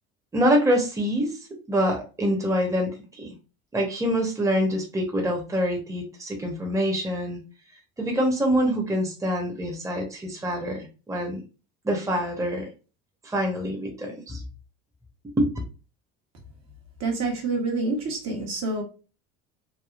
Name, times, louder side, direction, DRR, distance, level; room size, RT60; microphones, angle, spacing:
voice 1, 0.3-1.4 1.7-3.3 3.7-7.4 8.0-11.4 11.8-12.7 13.2-14.4 15.4-15.5, equal, 10° right, 0.9 m, -25 dB
voice 2, 17.0-18.8, right 3 dB, 50° right, 1.2 m, -27 dB
3.4 x 2.2 x 2.4 m
supercardioid pair, 85°, 33 cm